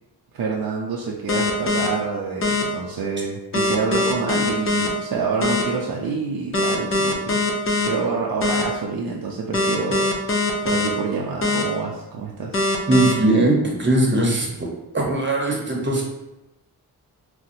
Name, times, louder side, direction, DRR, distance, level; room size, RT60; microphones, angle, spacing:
voice 1, 0.3-7.4 7.8-10.1 10.6-12.6, right 4 dB, 60° right, -2 dB, 0.5 m, -27 dB
sound 1, 1.3-1.9 2.4-2.6 3.5-4.9 5.4-5.6 6.5-7.9 8.4-8.6 9.5-10.9 11.4-11.6 12.5-13.1, left 2 dB, 35° left, 0.5 m, -21 dB
voice 2, 12.9-14.7 14.9-16.0, right 2 dB, 30° right, -1 dB, 0.9 m, -20 dB
4.0 x 2.1 x 2.6 m, 0.96 s
cardioid pair, 60°, 40 cm